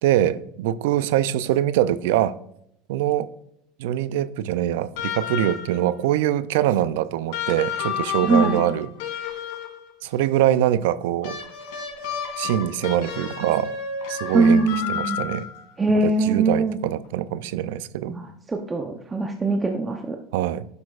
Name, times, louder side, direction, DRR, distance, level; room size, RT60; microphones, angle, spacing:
voice 1, 0.0-2.4 2.9-3.3 3.8-8.9 10.0-11.4 12.4-13.7 14.1-15.5 16.0-18.1 20.3-20.7, right 12 dB, 80° right, 0.4 m, -23 dB
sound 1, 5.0-5.9 7.3-9.9 11.2-15.7 17.0-17.1, left 7 dB, 75° left, 2.7 m, -31 dB
voice 2, 8.2-8.6 14.3-15.2 15.8-16.8 18.1-20.2, right 2 dB, 15° right, 0.7 m, -22 dB
10.5 x 6.1 x 2.4 m
supercardioid pair, 120°, 0 cm